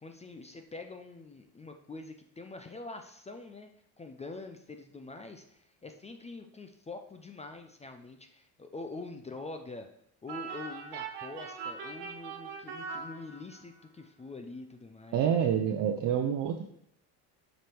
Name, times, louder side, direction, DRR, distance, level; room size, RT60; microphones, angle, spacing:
voice 1, 0.0-3.7 4.0-9.9 10.2-15.4, left 3 dB, 15° left, 6 dB, 0.5 m, -45 dB
sound 1, 10.3-13.8, right 5 dB, 65° right, 1.5 m, -41 dB
voice 2, 15.1-16.6, right 8 dB, 50° right, 3 dB, 0.8 m, -27 dB
7.6 x 5.2 x 4.6 m, 0.73 s
cardioid pair, 115°, 43 cm